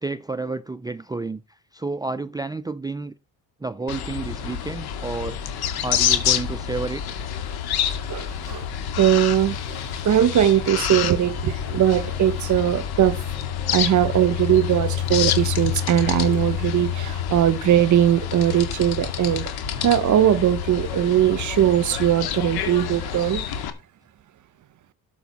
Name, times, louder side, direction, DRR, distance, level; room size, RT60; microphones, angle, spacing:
voice 1, 0.0-3.1 3.6-5.4 5.8-7.0, right 3 dB, 10° right, 0.5 m, -30 dB
sound 1, 3.9-23.7, left 9 dB, 85° left, 2.2 m, -27 dB
voice 2, 8.1-8.7 9.0-9.8 10.0-13.2 13.7-19.4 19.8-23.4, right 11 dB, 50° right, 0.9 m, -20 dB
12.5 x 8.0 x 4.2 m
cardioid pair, 130°, 37 cm